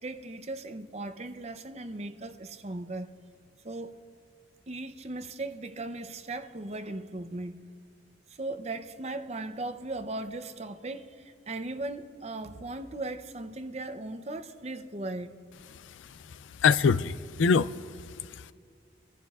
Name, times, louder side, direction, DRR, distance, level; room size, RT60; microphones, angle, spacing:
voice 1, 0.0-3.1 3.6-4.0 4.7-7.6 8.3-15.4, right 2 dB, 35° right, 0.6 m, -38 dB
voice 2, 15.8-18.5, left 5 dB, 90° left, 0.4 m, -26 dB
26.5 x 14.5 x 2.4 m
head